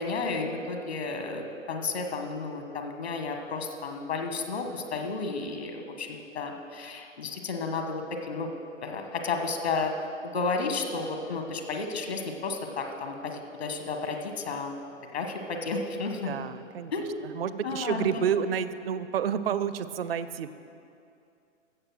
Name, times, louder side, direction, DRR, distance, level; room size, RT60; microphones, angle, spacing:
voice 1, 0.0-6.1 6.3-8.5 8.8-9.9 10.2-14.7 15.1-16.3 16.9-17.3 17.6-18.2, left 4 dB, 55° left, 4 dB, 1.5 m, -32 dB
voice 2, 16.2-20.5, right 8 dB, 50° right, 13 dB, 0.5 m, -30 dB
15.0 x 6.6 x 6.2 m, 2.5 s
figure-of-eight pair, 120°, 37 cm